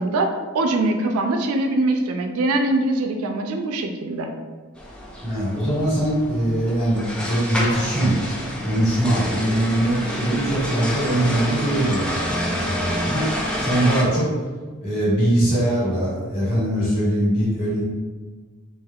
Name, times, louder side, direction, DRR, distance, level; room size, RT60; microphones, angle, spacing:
voice 1, 0.0-4.3, right 2 dB, 85° right, 5 dB, 0.4 m, -22 dB
sound 1, 4.8-14.0, equal, 5° left, 0.3 m, -28 dB
voice 2, 5.2-8.1 8.6-13.3 13.6-14.3 14.8-17.8, right 1 dB, 25° left, -8 dB, 1.3 m, -22 dB
3.3 x 3.0 x 2.3 m, 1.5 s
head